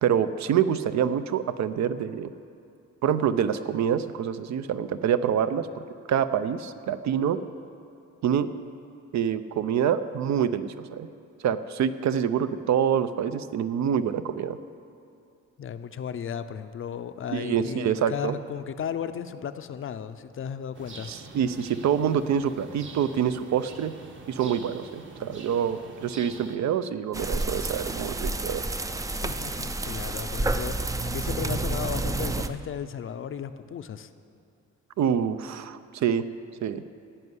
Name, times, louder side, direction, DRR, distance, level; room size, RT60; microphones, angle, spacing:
voice 1, 0.0-2.3 3.0-5.8 6.1-7.4 8.2-8.5 9.1-11.1 11.4-14.6 17.3-18.4 21.1-23.9 24.3-28.6 35.0-36.2 36.6-36.8, right 8 dB, 65° right, 12 dB, 0.6 m, -26 dB
voice 2, 15.6-21.1 29.2-34.1, left 8 dB, 45° left, 11 dB, 0.5 m, -35 dB
sound 1, 20.7-26.6, right 3 dB, 40° right, 1.1 m, -45 dB
sound 2, 27.1-32.5, right 2 dB, 10° right, 0.4 m, -29 dB
15.0 x 5.5 x 9.5 m, 2.6 s
cardioid pair, 140°, 30 cm